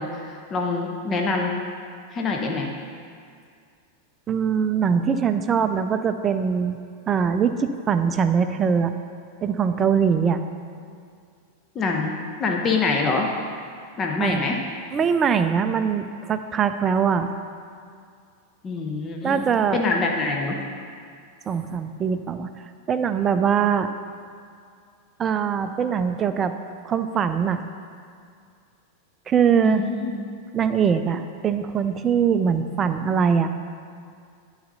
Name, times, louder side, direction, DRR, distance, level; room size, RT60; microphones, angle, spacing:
voice 1, 0.0-1.5 2.1-2.7 11.7-12.1 12.4-13.3 14.0-14.6 18.6-19.4 19.7-20.6 29.6-30.3, left 3 dB, 25° left, 1 dB, 0.8 m, -25 dB
voice 2, 4.3-6.8 7.1-8.9 9.4-10.4 14.2-14.4 14.9-17.3 19.2-19.8 21.5-22.5 22.9-23.9 25.2-26.5 26.8-27.6 29.3-29.8 30.5-33.5, right 7 dB, 25° right, 9 dB, 0.4 m, -22 dB
11.5 x 4.1 x 5.5 m, 2.3 s
figure-of-eight pair, 90°, 0 cm